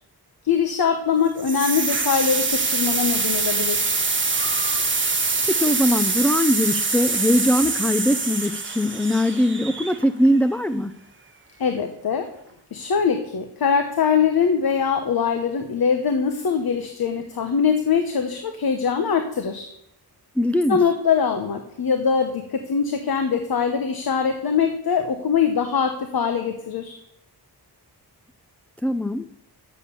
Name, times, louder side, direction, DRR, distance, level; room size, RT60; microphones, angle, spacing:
voice 1, 0.4-4.0 11.6-12.3 12.7-19.7 20.7-27.0, left 6 dB, 65° left, 6 dB, 1.0 m, -22 dB
sound 1, 1.4-10.3, right 4 dB, 30° right, 1.3 m, -24 dB
voice 2, 5.4-11.0 20.4-20.8 28.8-29.3, left 1 dB, 5° left, 9 dB, 0.3 m, -21 dB
10.0 x 7.4 x 6.9 m, 0.78 s
wide cardioid pair, 135°, 39 cm